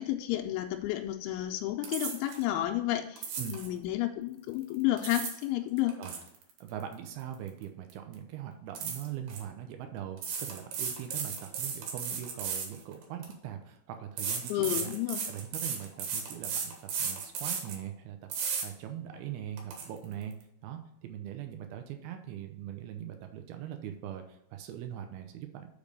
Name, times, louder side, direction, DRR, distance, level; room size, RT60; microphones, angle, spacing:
voice 1, 0.0-6.0 14.5-15.2, left 14 dB, 90° left, 3 dB, 3.0 m, -31 dB
sound 1, 1.8-2.4 3.2-3.7 4.7-5.4 5.8-7.6 7.9-8.1 8.8-9.4 10.2-13.3 14.2-17.8 18.3-18.7 19.1-19.2 19.6-19.9, right 6 dB, 70° right, 3.1 m, -35 dB
voice 2, 6.6-15.0 15.3-20.3 20.6-25.7, right 10 dB, 85° right, 6 dB, 2.2 m, -41 dB
6.5 x 5.2 x 5.1 m, 0.77 s
omnidirectional pair, 5.3 m